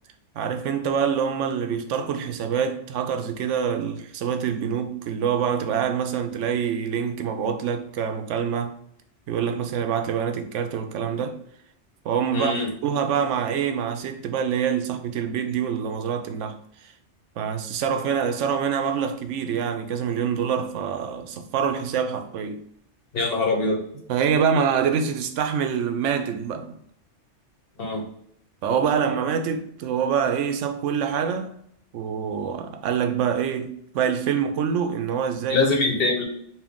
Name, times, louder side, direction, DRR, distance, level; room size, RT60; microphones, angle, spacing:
voice 1, 0.3-8.8 9.3-11.4 12.0-12.5 12.8-16.9 17.4-22.6 24.1-26.8 28.6-31.5 31.9-35.7, right 7 dB, 80° right, 0.9 m, -25 dB
voice 2, 12.3-12.7 23.1-23.8 27.8-28.0 35.5-36.2, left 3 dB, 55° left, 1.0 m, -23 dB
4.3 x 2.2 x 3.5 m
omnidirectional pair, 1.2 m